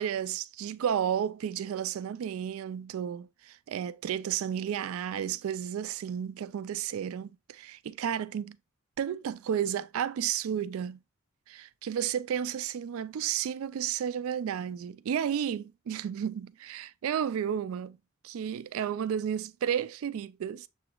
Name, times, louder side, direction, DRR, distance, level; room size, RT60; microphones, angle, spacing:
voice 1, 0.0-8.6 9.0-11.0 11.5-18.0 18.2-20.7, right 9 dB, 80° right, 0.3 m, -32 dB
6.9 x 3.1 x 2.3 m
head